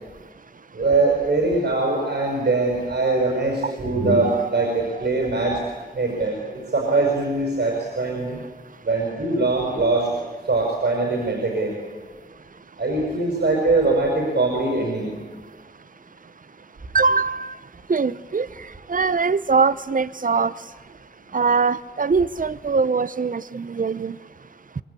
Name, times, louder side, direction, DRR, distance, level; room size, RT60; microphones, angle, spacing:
voice 1, 0.7-5.6 5.9-6.4 6.7-8.4 8.8-10.1 10.5-11.7 12.8-15.1, right 3 dB, 75° right, -1 dB, 5.6 m, -22 dB
voice 2, 4.2-4.7 4.9-5.1 16.9-17.6 17.9-18.5 18.9-20.5 21.3-24.2, right 4 dB, 50° right, 17 dB, 0.8 m, -22 dB
25.0 x 22.5 x 8.5 m, 1.4 s
wide cardioid pair, 65°, 17 cm